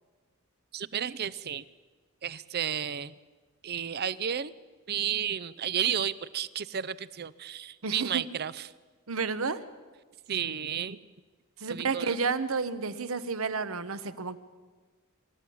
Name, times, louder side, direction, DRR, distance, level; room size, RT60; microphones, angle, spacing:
voice 1, 0.7-1.7 2.2-3.1 3.6-4.5 4.9-8.7 10.3-11.1 11.7-12.2, right 9 dB, 45° right, 18 dB, 0.6 m, -32 dB
voice 2, 7.8-8.2 9.1-9.6 11.6-14.4, right 4 dB, 70° right, 13 dB, 1.0 m, -31 dB
24.5 x 13.5 x 8.6 m, 1.4 s
head